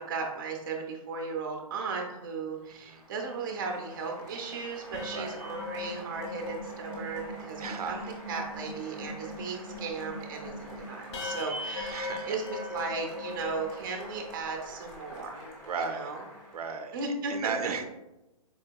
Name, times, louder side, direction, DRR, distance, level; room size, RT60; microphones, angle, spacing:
voice 1, 0.0-15.4 15.8-16.2 16.9-17.7, right 4 dB, 35° right, 2 dB, 0.5 m, -36 dB
Applause, 2.5-16.9, equal, 15° left, 0.7 m, -48 dB
sound 1, 4.8-14.3 14.8-14.9 15.2-15.5, left 2 dB, 50° left, 0.7 m, -40 dB
voice 2, 7.6-8.1 11.9-12.4 15.6-16.1 16.5-16.9 17.3-17.8, right 5 dB, 85° right, 6 dB, 0.5 m, -35 dB
4.3 x 2.7 x 2.2 m, 0.97 s
hypercardioid pair, 165°, 19 cm